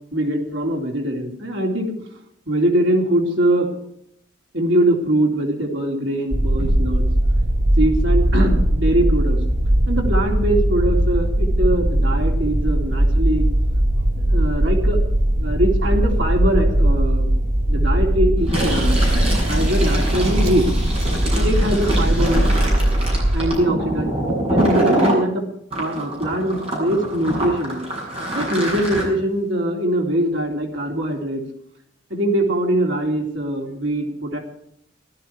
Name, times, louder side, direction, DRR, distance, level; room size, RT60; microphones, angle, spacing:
voice 1, 0.1-1.9 2.5-3.7 4.5-7.1 7.8-9.4 9.9-13.5 14.2-15.0 15.4-17.3 17.7-19.0 19.4-21.1 21.3-22.5 23.3-24.1 24.5-25.4 25.8-27.8 28.1-31.4 32.1-34.4, right 1 dB, 70° right, 0 dB, 3.5 m, -22 dB
sound 1, 6.3-23.5, right 1 dB, 90° right, 2.9 m, -19 dB
Fill (with liquid), 18.4-25.2 25.7-29.0, right 1 dB, 30° right, 7.6 m, -24 dB
18.0 x 13.5 x 4.7 m, 0.72 s
head